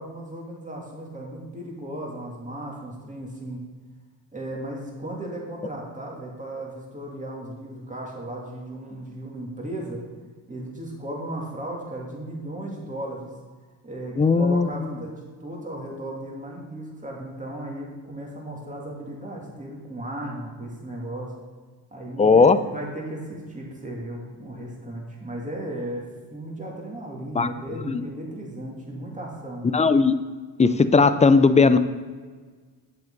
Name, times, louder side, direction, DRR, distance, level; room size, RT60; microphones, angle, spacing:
voice 1, 0.0-3.6 4.3-10.0 10.5-13.3 13.8-21.3 21.9-26.0 26.3-29.6, right 1 dB, 15° right, -2 dB, 2.7 m, -35 dB
voice 2, 14.2-14.7 22.2-22.6 27.3-27.5 27.9-28.0 29.7-30.2 30.6-31.8, left 4 dB, 15° left, 12 dB, 0.5 m, -17 dB
7.6 x 7.5 x 4.0 m, 1.5 s
supercardioid pair, 55°, 48 cm